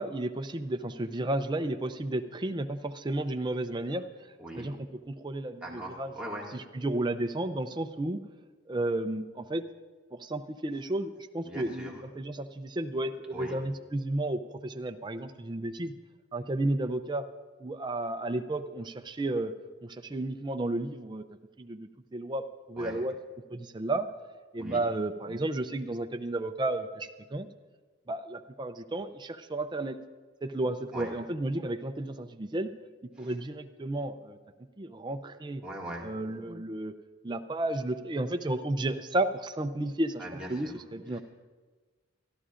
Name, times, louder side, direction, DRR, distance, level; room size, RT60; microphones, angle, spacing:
voice 1, 0.0-4.0 4.6-6.1 6.5-8.2 8.7-9.6 10.1-15.9 16.3-17.3 17.6-19.5 19.8-21.2 21.6-23.2 23.5-24.1 24.5-27.5 28.1-30.0 30.4-32.7 33.2-34.4 34.8-35.6 36.0-36.9 37.2-40.2 40.5-41.2, right 2 dB, 20° right, 8 dB, 0.4 m, -32 dB
voice 2, 4.4-4.7 5.6-6.5 11.4-12.0 13.3-13.6 22.8-23.0 24.6-24.8 30.9-31.1 33.2-33.3 35.6-36.1 40.2-40.7 41.1-41.2, right 1 dB, 5° right, -4 dB, 2.0 m, -40 dB
23.5 x 12.5 x 2.5 m, 1.4 s
head